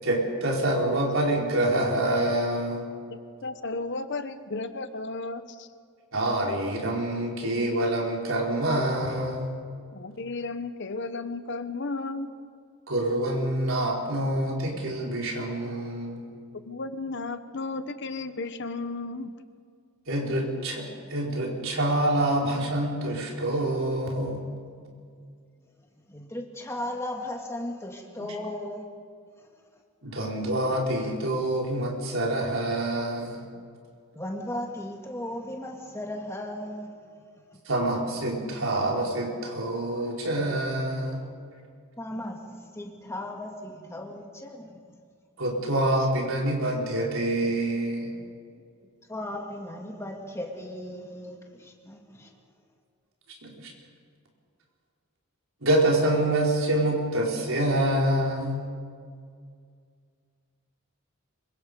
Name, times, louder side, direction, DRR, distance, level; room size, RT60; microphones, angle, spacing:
voice 1, 0.0-2.8 6.1-9.5 12.9-16.2 20.1-20.8 21.1-24.5 30.0-33.4 37.7-41.2 45.4-48.1 53.4-53.7 55.6-58.7, right 1 dB, 65° right, 4.6 m, -26 dB
voice 2, 3.4-5.4 9.9-12.3 16.7-19.3, left 3 dB, 55° left, 1.1 m, -33 dB
voice 3, 26.1-28.8 34.2-36.9 42.0-44.8 49.1-52.3, left 1 dB, 15° left, 2.2 m, -36 dB
25.5 x 24.0 x 5.4 m
head